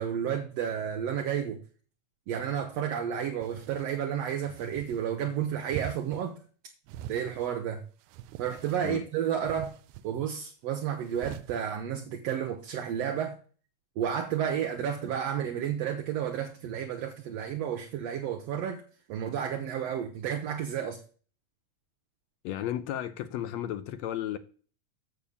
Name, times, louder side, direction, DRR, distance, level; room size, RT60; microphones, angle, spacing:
voice 1, 0.0-1.6 2.3-6.4 7.1-7.8 8.4-9.7 10.0-13.4 14.0-18.8 19.1-21.0, right 9 dB, 70° right, 1.9 m, -31 dB
sound 1, 3.4-3.9 4.4-5.0 5.7-6.2 6.9-7.5 8.0-8.9 9.4-10.0 11.0-11.6, right 12 dB, 85° right, 2.0 m, -43 dB
voice 2, 22.4-24.4, left 11 dB, 75° left, 1.8 m, -33 dB
6.9 x 6.7 x 7.1 m
omnidirectional pair, 3.4 m